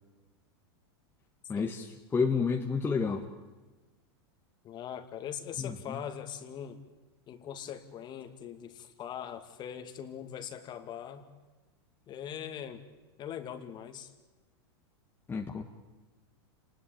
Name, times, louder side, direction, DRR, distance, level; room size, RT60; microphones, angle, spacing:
voice 1, 1.5-1.9 2.1-3.2 5.6-5.7 15.3-15.6, left 5 dB, 15° left, 3 dB, 1.7 m, -29 dB
voice 2, 4.6-6.8 7.3-11.3 12.1-12.8 13.2-14.1, left 9 dB, 30° left, 9 dB, 2.4 m, -41 dB
28.5 x 20.0 x 8.8 m, 1.2 s
hypercardioid pair, 125°, 14 cm